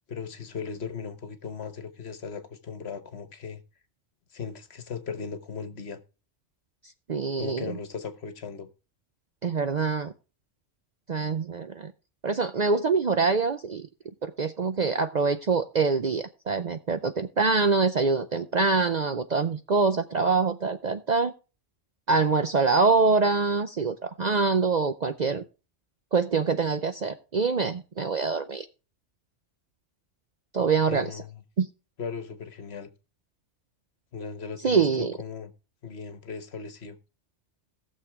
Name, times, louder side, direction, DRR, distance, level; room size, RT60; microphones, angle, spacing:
voice 1, 0.1-3.6 4.3-6.0 7.4-8.7 30.9-31.4 32.0-32.9 34.1-35.5 35.8-37.0, left 5 dB, 60° left, 1.3 m, -37 dB
voice 2, 7.1-7.7 9.4-10.1 11.1-11.9 12.2-13.9 14.2-21.3 22.1-25.4 26.1-28.7 30.5-31.2 31.6-31.7 34.6-35.1, right 4 dB, 50° right, 0.6 m, -25 dB
18.0 x 6.6 x 3.4 m
omnidirectional pair, 1.2 m